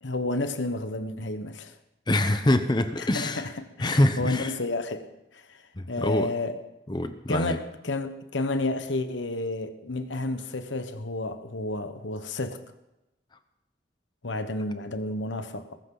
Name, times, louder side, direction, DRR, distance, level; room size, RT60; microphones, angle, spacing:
voice 1, 0.0-1.7 3.0-5.1 5.3-5.6 5.9-6.6 7.3-12.6 14.2-15.8, left 2 dB, 90° left, 1.2 m, -31 dB
voice 2, 2.1-3.5 3.8-4.5 5.8-6.3 6.9-7.6, left 1 dB, 25° left, 0.8 m, -25 dB
21.0 x 13.5 x 4.0 m
head